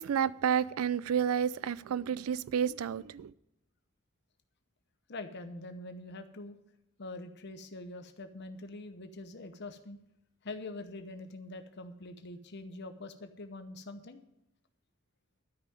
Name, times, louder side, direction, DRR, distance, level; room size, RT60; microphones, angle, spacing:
voice 1, 0.0-3.3, right 8 dB, 85° right, 0.4 m, -30 dB
voice 2, 5.1-6.6 7.0-10.0 10.4-14.2, left 2 dB, 50° left, 0.8 m, -44 dB
12.5 x 5.6 x 8.9 m
head